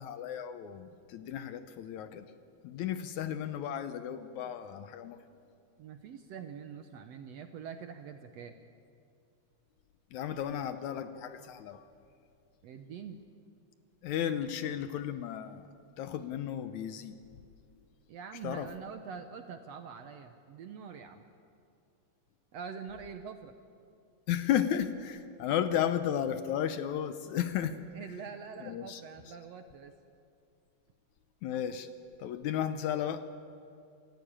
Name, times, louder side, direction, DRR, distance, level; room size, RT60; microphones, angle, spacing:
voice 1, 0.0-2.3 2.6-5.2 10.1-11.8 14.0-15.7 16.0-17.2 18.4-18.7 24.3-27.8 28.6-29.0 31.4-31.9 32.2-33.3, left 10 dB, 75° left, 10 dB, 1.9 m, -34 dB
voice 2, 5.8-8.5 12.6-13.2 18.1-21.2 22.5-23.5 27.9-29.9, right 6 dB, 70° right, 7 dB, 1.7 m, -44 dB
27.5 x 15.0 x 8.8 m, 2.5 s
omnidirectional pair, 3.8 m